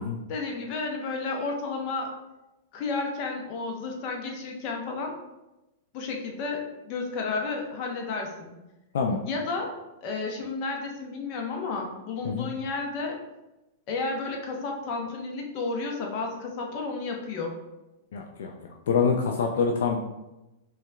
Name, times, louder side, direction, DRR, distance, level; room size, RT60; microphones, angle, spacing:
voice 1, 0.3-2.1 2.7-5.1 5.9-8.5 9.2-9.7 10.0-13.2 13.9-17.6, left 3 dB, 45° left, 1 dB, 0.8 m, -32 dB
voice 2, 18.1-18.5 18.9-20.0, left 5 dB, 65° left, 2 dB, 0.3 m, -25 dB
5.3 x 2.4 x 2.3 m, 0.98 s
figure-of-eight pair, 100°, 0 cm